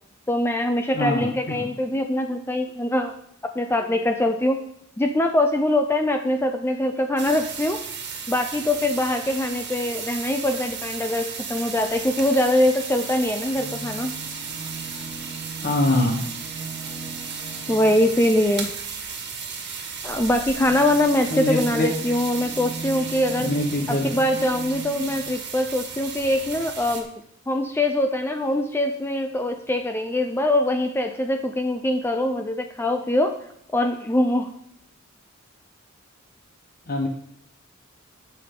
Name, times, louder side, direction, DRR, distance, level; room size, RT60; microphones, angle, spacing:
voice 1, 0.3-3.1 3.6-4.6 5.0-7.8 8.3-14.1 17.7-18.7 20.0-23.5 23.9-27.1 27.5-33.4 33.7-34.5, left 1 dB, 10° left, 5 dB, 0.5 m, -23 dB
voice 2, 0.9-1.7 15.6-16.2 21.3-21.9 23.4-24.2 36.9-37.1, left 2 dB, 45° left, 1 dB, 1.0 m, -24 dB
sound 1, 7.2-27.0, right 6 dB, 55° right, 1.6 m, -35 dB
sound 2, 13.4-18.3 20.0-25.4 26.4-26.5 26.7-26.8, right 2 dB, 20° right, 1.1 m, -38 dB
14.5 x 5.7 x 3.8 m, 0.72 s
head